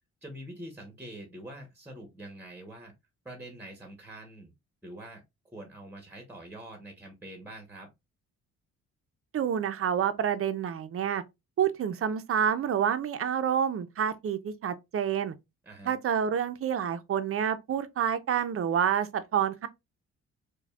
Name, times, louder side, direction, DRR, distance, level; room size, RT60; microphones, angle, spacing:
voice 1, 0.2-2.9 3.2-4.5 4.8-7.9 15.6-15.9, right 1 dB, 5° right, 1.0 m, -45 dB
voice 2, 9.3-11.2 11.6-15.3 15.9-19.7, right 8 dB, 50° right, 0.6 m, -28 dB
5.1 x 2.3 x 2.3 m
cardioid pair, 90°, 30 cm